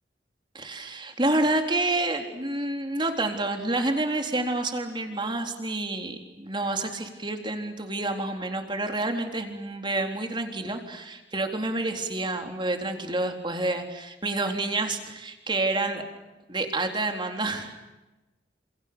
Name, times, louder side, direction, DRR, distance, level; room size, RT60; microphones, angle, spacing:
voice 1, 0.5-16.0 16.5-17.7, right 2 dB, 25° right, 4 dB, 3.8 m, -28 dB
29.0 x 28.0 x 7.1 m, 1.1 s
head